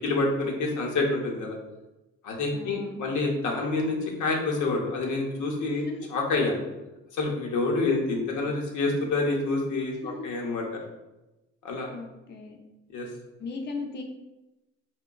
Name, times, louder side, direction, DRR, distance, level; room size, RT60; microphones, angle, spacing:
voice 1, 0.0-1.6 2.2-6.5 7.1-10.8 11.6-11.9 12.9-13.1, left 3 dB, 80° left, 0 dB, 0.8 m, -27 dB
voice 2, 2.5-3.1 5.7-6.1 10.0-10.3 11.9-12.6 13.4-14.0, left 3 dB, 35° left, 2 dB, 0.5 m, -37 dB
4.8 x 2.1 x 2.2 m, 1.0 s
cardioid pair, 90°, 30 cm